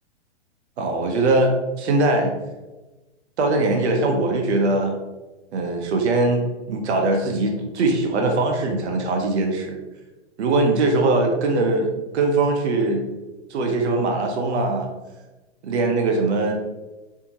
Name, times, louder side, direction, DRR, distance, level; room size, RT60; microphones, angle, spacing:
voice 1, 0.8-2.3 3.4-4.9 5.5-9.8 10.4-13.0 13.5-14.9 15.6-16.5, right 2 dB, 70° right, 2 dB, 0.9 m, -21 dB
4.5 x 2.7 x 2.9 m, 1.1 s
hypercardioid pair, 165°, 35 cm